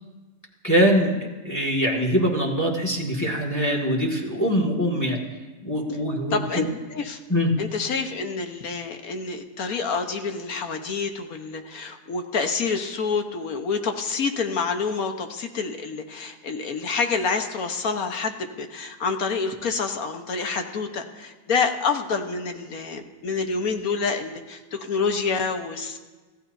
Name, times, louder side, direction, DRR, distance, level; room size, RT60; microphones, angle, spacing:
voice 1, 0.6-5.2 5.6-6.7 7.3-7.5, equal, 10° left, -1 dB, 1.9 m, -23 dB
voice 2, 6.3-6.6 6.9-7.2 7.6-26.0, left 5 dB, 60° left, 5 dB, 1.6 m, -27 dB
25.5 x 15.5 x 2.7 m, 1.3 s
omnidirectional pair, 1.8 m